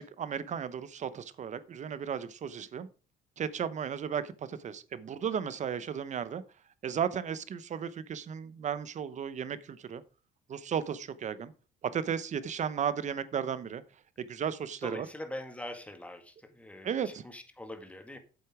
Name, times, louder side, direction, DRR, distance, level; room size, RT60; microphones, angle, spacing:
voice 1, 0.0-2.9 3.4-6.4 6.8-10.0 10.5-11.5 11.9-13.8 14.2-15.1 16.8-17.2, right 8 dB, 45° right, 0.9 m, -34 dB
voice 2, 14.8-18.2, left 1 dB, 10° left, 1.9 m, -43 dB
8.2 x 8.0 x 4.8 m
cardioid pair, 110°, 17 cm